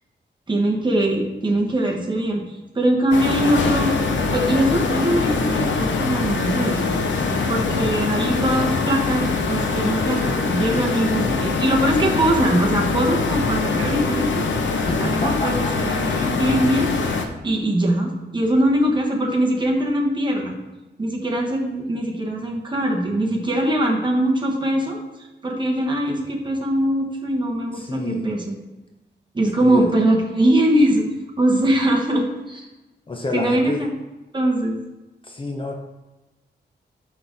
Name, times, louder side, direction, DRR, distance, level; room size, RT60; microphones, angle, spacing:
voice 1, 0.5-2.4 2.7-6.9 7.5-14.5 14.8-16.9 17.4-20.6 21.0-25.0 25.4-28.5 29.3-31.1 31.4-32.7 33.3-33.9 34.3-34.8, right 1 dB, 25° right, 0 dB, 1.2 m, -21 dB
sound 1, 3.1-17.3, left 4 dB, 80° left, 0.8 m, -23 dB
voice 2, 11.0-11.3 14.6-15.8 27.7-28.3 29.6-29.9 33.1-33.9 35.2-35.7, left 2 dB, 30° left, 2 dB, 0.6 m, -29 dB
6.3 x 5.8 x 3.9 m, 1.1 s
wide cardioid pair, 160°, 19 cm